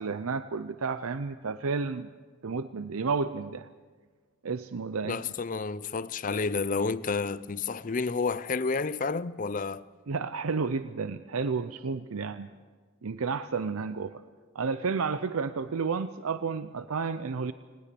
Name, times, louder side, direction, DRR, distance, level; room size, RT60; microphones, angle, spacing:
voice 1, 0.0-2.1 2.4-3.7 4.4-5.2 10.1-12.5 13.0-14.2 14.5-17.5, right 5 dB, 85° right, 0.6 m, -31 dB
voice 2, 5.0-9.8, left 4 dB, 40° left, 0.5 m, -30 dB
20.0 x 19.5 x 6.9 m
head